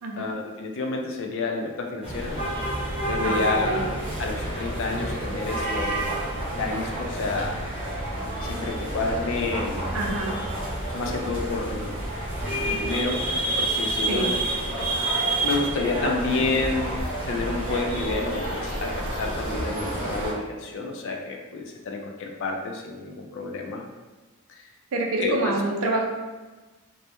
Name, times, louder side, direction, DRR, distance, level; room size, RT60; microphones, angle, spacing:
voice 1, 0.2-2.4 3.1-6.0 6.6-7.6 8.4-9.8 10.9-11.9 12.6-13.2 13.6-14.3 15.4-17.0 17.3-23.8 25.2-25.5, left 3 dB, 60° left, 2 dB, 0.4 m, -29 dB
sound 1, 2.0-20.3, right 1 dB, 25° right, 0.7 m, -29 dB
voice 2, 3.2-3.9 9.9-10.4 14.1-14.3 24.9-26.1, right 2 dB, 80° right, 0 dB, 0.4 m, -27 dB
2.2 x 2.0 x 2.8 m, 1.2 s
head